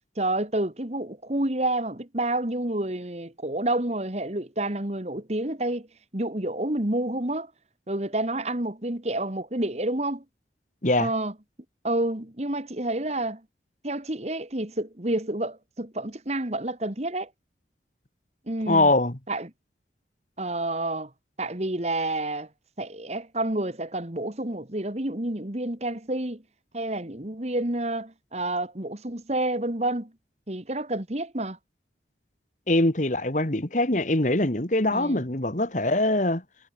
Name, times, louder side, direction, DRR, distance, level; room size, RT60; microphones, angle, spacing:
voice 1, 0.2-5.9 6.1-7.5 7.9-10.2 11.0-11.3 11.8-13.4 13.8-17.3 18.5-18.9 19.3-19.5 20.4-21.1 21.4-22.5 22.8-26.4 26.7-30.1 30.5-31.6 34.9-35.3, right 1 dB, 35° right, 1.9 m, -29 dB
voice 2, 18.7-19.1 32.7-36.4, left 2 dB, 45° left, 2.1 m, -23 dB
head